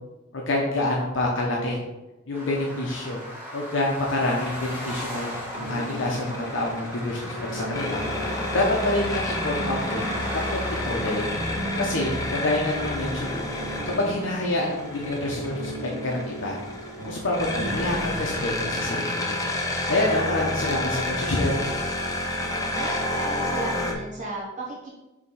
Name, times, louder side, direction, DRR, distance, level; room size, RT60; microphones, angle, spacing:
voice 1, 0.3-1.8 2.3-3.2 3.5-10.1 10.5-11.3 11.8-13.5 13.9-16.6 17.0-19.4 19.9-21.6, left 1 dB, 65° left, -2 dB, 0.8 m, -27 dB
sound 1, 2.3-21.4, equal, 10° right, 1.2 m, -39 dB
sound 2, 4.4-23.9, left 1 dB, 15° left, 0.7 m, -30 dB
sound 3, 5.5-18.3, right 1 dB, 75° right, 1.2 m, -38 dB
voice 2, 22.5-24.9, right 2 dB, 40° right, -4 dB, 1.3 m, -35 dB
4.9 x 3.5 x 5.6 m, 1.0 s
head